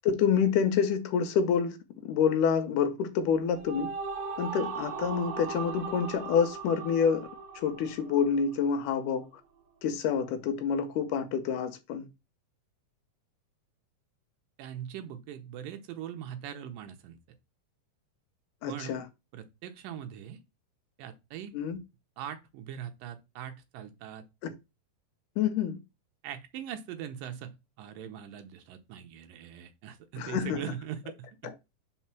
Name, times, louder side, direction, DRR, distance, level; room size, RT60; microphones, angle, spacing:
voice 1, 0.0-1.8 2.0-3.9 4.4-7.3 7.6-9.3 9.8-12.1 18.6-19.0 21.5-21.8 24.4-24.5 25.4-25.8 30.2-30.6, left 7 dB, 75° left, 2.1 m, -27 dB
sound 1, 3.2-8.7, right 5 dB, 60° right, 1.9 m, -38 dB
voice 2, 14.6-17.2 18.7-18.9 19.3-20.4 21.0-21.5 22.2-24.2 26.2-31.6, right 9 dB, 75° right, 2.4 m, -41 dB
5.6 x 4.1 x 5.9 m
omnidirectional pair, 4.2 m